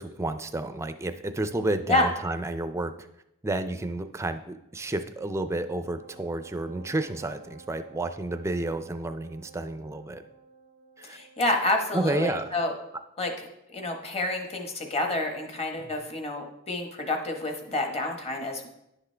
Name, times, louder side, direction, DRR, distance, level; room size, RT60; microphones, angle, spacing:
voice 1, 0.0-3.1 3.4-10.2 11.0-11.2 11.9-12.5 15.8-15.9, right 2 dB, 15° right, 9 dB, 0.4 m, -31 dB
Wind instrument woodwind instrument, 5.7-12.4, right 4 dB, 80° left, 2.6 m, -53 dB
voice 2, 11.0-12.7 13.2-18.7, left 2 dB, 30° left, 3 dB, 1.1 m, -29 dB
10.5 x 5.9 x 3.3 m, 0.85 s
head